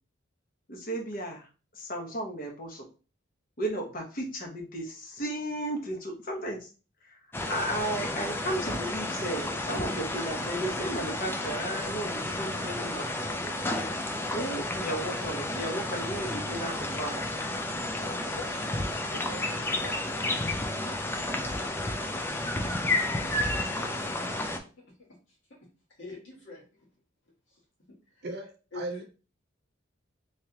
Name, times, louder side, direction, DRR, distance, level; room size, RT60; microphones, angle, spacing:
voice 1, 0.7-1.5 1.7-2.9 3.6-6.6 7.0-7.2 7.5-13.4 14.3-17.2, right 1 dB, 45° left, 1 dB, 1.0 m, -34 dB
sound 1, 7.3-24.6, left 1 dB, 10° left, 0.4 m, -31 dB
voice 2, 14.3-14.6 18.0-18.5 19.1-20.2 22.8-26.9 27.5-27.6 27.9-28.3 28.7-29.0, left 2 dB, 65° left, -3 dB, 1.5 m, -49 dB
voice 3, 28.2-29.0, right 2 dB, 55° right, 5 dB, 0.7 m, -37 dB
3.4 x 3.2 x 2.8 m, 0.34 s
head